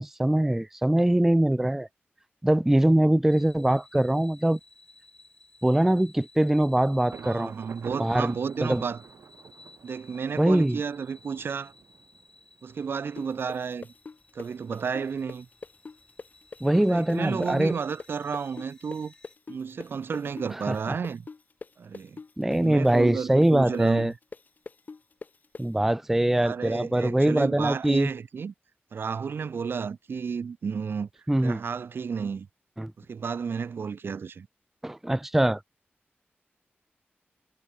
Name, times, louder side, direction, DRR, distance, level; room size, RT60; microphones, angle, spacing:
voice 1, 0.0-1.9 2.4-4.6 5.6-7.5 8.0-8.8 10.4-10.8 16.6-17.8 20.5-21.0 22.4-24.1 25.6-28.1 31.3-31.6 32.8-32.9 34.8-35.6, right 1 dB, 5° right, 0.4 m, -23 dB
sound 1, 3.3-19.4, left 2 dB, 20° left, 2.9 m, -56 dB
Thunder, 7.1-12.8, right 6 dB, 90° right, 3.1 m, -47 dB
voice 2, 7.2-9.0 9.8-11.7 12.6-13.9 14.3-15.5 16.9-19.1 19.5-21.2 21.8-22.2 22.6-24.1 26.4-28.5 28.9-31.1 31.4-32.5 33.0-34.5, right 6 dB, 65° right, 0.8 m, -32 dB
sound 2, 13.2-20.8 21.0-25.6, left 4 dB, 45° left, 2.4 m, -42 dB
wide cardioid pair, 145°, 4 cm